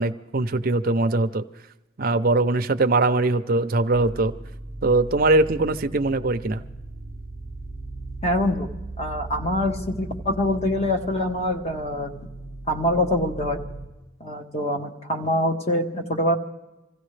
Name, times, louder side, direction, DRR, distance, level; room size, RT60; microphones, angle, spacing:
voice 1, 0.0-1.4 2.0-4.3 4.8-6.6, right 2 dB, 45° right, 9 dB, 0.6 m, -21 dB
sound 1, 3.9-13.9, right 2 dB, 70° left, 2.0 m, -38 dB
voice 2, 8.2-8.7 9.0-12.3 12.7-13.6 14.2-16.3, left 1 dB, 30° left, 3 dB, 1.2 m, -24 dB
25.5 x 15.5 x 3.3 m, 1.0 s
head